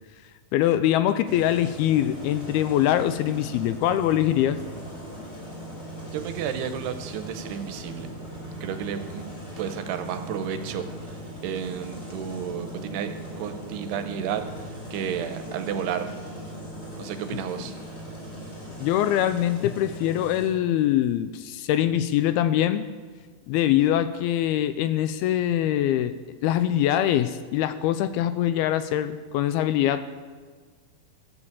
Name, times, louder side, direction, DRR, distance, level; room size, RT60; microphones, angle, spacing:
voice 1, 0.5-4.6 18.8-22.9 23.5-30.0, left 12 dB, 80° left, 11 dB, 2.4 m, -23 dB
sound 1, 1.2-20.5, equal, 20° left, 5.2 m, -39 dB
voice 2, 6.1-8.1 8.6-9.3 9.6-10.9 11.4-14.4 14.9-16.1 17.0-17.8, right 8 dB, 85° right, 8 dB, 3.0 m, -32 dB
15.0 x 9.6 x 7.3 m, 1.5 s
omnidirectional pair, 4.8 m